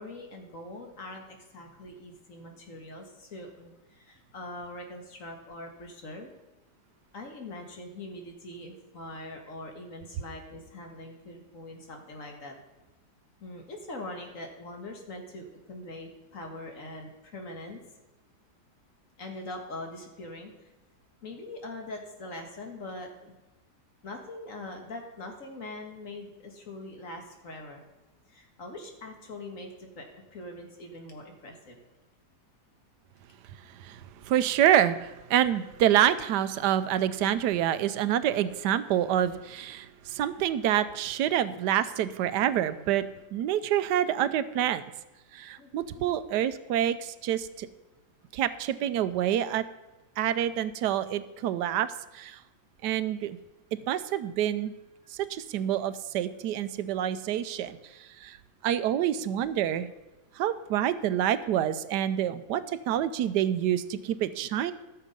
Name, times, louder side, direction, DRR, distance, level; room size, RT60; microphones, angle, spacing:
voice 1, 0.0-6.3 7.1-12.5 13.4-17.8 19.2-20.7 21.2-23.3 24.0-27.8 28.3-31.8 45.6-46.2 57.6-57.7, left 2 dB, 50° left, 3 dB, 1.9 m, -42 dB
voice 2, 33.8-43.0 43.3-44.8 45.3-47.7 48.3-49.6 50.2-52.4 52.8-53.4 53.9-54.7 55.1-58.4 58.6-59.9 60.4-64.7, right 11 dB, 90° right, 14 dB, 1.2 m, -27 dB
13.5 x 6.8 x 5.3 m, 1.1 s
omnidirectional pair, 1.8 m